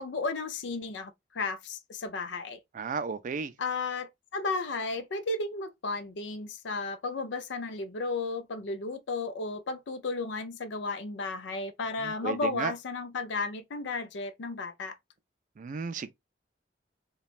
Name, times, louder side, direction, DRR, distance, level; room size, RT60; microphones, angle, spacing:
voice 1, 0.0-2.6 3.6-15.0, left 3 dB, 80° left, 0.5 m, -34 dB
voice 2, 2.7-3.5 12.0-12.7 15.6-16.1, right 5 dB, 45° right, 0.4 m, -34 dB
3.0 x 2.2 x 2.4 m
head